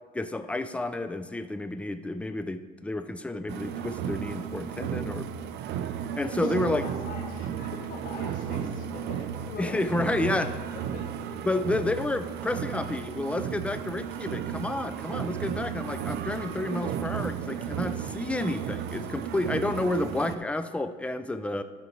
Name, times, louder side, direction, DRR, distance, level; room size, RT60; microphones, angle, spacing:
voice 1, 0.1-5.3 6.2-6.8 9.6-10.5 11.4-21.6, left 2 dB, 5° left, 9 dB, 0.4 m, -30 dB
sound 1, 3.5-20.4, right 9 dB, 75° right, 0.5 m, -34 dB
voice 2, 6.2-6.5 6.8-10.1 10.4-10.5 10.9-11.1, left 3 dB, 55° left, -2 dB, 1.8 m, -42 dB
11.5 x 5.2 x 4.5 m, 1.6 s
cardioid pair, 110°, 17 cm